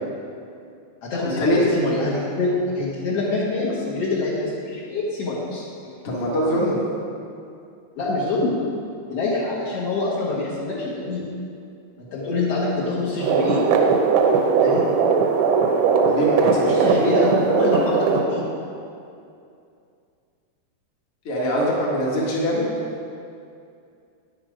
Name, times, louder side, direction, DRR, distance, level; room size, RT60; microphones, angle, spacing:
voice 1, 1.0-5.6 7.9-8.5 9.1-11.3 12.0-13.6 14.6-14.9 16.6-18.5, left 2 dB, 75° left, -7 dB, 1.4 m, -25 dB
voice 2, 6.0-6.8 16.0-17.0 21.2-22.7, equal, 60° left, -4 dB, 1.5 m, -23 dB
sound 1, 13.2-18.2, right 5 dB, 85° right, 3.3 m, -19 dB
9.8 x 8.7 x 5.0 m, 2.5 s
omnidirectional pair, 5.2 m